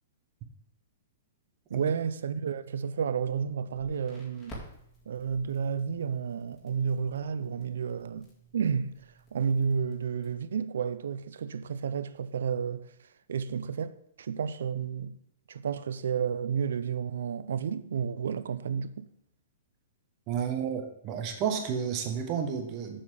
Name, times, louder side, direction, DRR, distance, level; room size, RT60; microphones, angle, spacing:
voice 1, 1.7-4.6 5.1-8.3 8.5-9.0 9.3-12.9 13.3-15.2 15.5-19.1, right 6 dB, 80° right, 0.5 m, -31 dB
Crackle, 3.7-10.2, right 1 dB, 20° left, 2.2 m, -52 dB
voice 2, 20.3-23.0, right 7 dB, 25° right, 1.1 m, -31 dB
7.5 x 4.2 x 6.9 m
hypercardioid pair, 165°, 0 cm